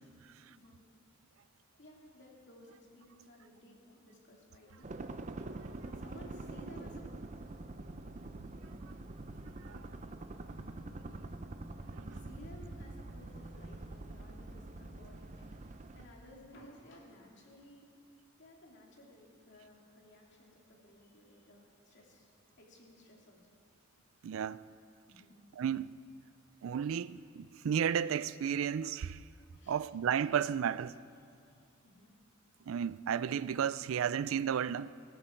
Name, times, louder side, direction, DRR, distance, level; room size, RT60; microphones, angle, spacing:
voice 1, 0.5-0.8 1.8-4.9 5.8-7.0 12.0-17.9 18.4-22.3 22.6-23.5 25.1-25.3 29.5-29.9 31.4-32.1, left 1 dB, 60° left, 2.7 m, -57 dB
sound 1, 4.8-16.1, right 2 dB, 35° right, 0.6 m, -45 dB
voice 2, 24.2-24.6 25.6-26.0 26.6-29.2 29.7-30.9 32.7-34.9, right 8 dB, 75° right, 0.4 m, -33 dB
17.0 x 15.0 x 4.5 m
head